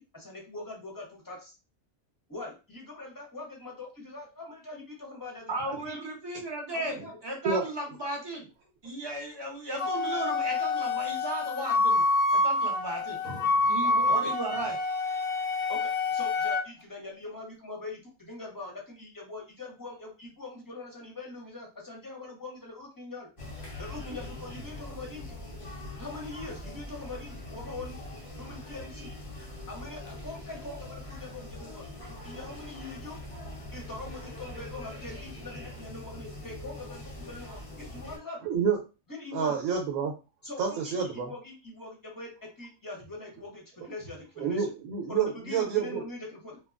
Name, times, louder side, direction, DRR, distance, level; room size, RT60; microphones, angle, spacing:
voice 1, 0.0-1.5 2.3-6.0 6.7-7.1 14.1-14.3 15.7-23.3 23.8-25.4 26.0-28.0 28.3-29.1 29.7-33.2 33.7-38.5 39.1-39.6 40.4-44.7 45.1-46.6, left 2 dB, 20° left, -1 dB, 0.7 m, -42 dB
voice 2, 5.5-8.5 8.8-13.2 13.6-14.8, right 1 dB, 25° right, -1 dB, 0.6 m, -35 dB
Wind instrument woodwind instrument, 9.8-16.6, left 2 dB, 85° left, 1.0 m, -27 dB
sound 1, 23.4-38.2, left 1 dB, 45° left, 0.4 m, -42 dB
voice 3, 38.4-38.8 39.3-40.1 40.6-41.3 44.4-46.0, right 6 dB, 80° right, 1 dB, 1.0 m, -28 dB
3.0 x 2.2 x 2.4 m, 0.30 s
omnidirectional pair, 1.4 m